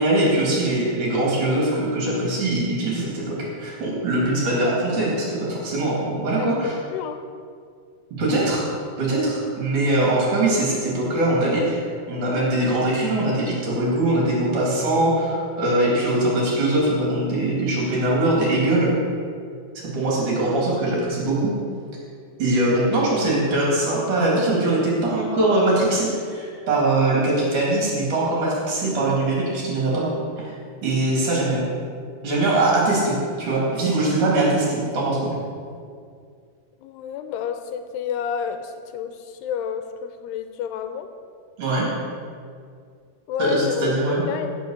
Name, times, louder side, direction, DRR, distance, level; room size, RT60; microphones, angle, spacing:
voice 1, 0.0-6.7 8.2-8.7 9.0-11.8 12.1-18.9 19.7-21.5 22.4-30.1 30.4-30.5 30.8-31.6 32.2-33.1 33.4-35.4 41.6-41.9 43.4-44.2, right 2 dB, 50° right, -5 dB, 4.5 m, -22 dB
voice 2, 6.4-7.2 36.8-41.1 43.3-44.6, left 8 dB, 85° left, 7 dB, 2.8 m, -30 dB
15.5 x 7.0 x 6.7 m, 2.2 s
omnidirectional pair, 4.7 m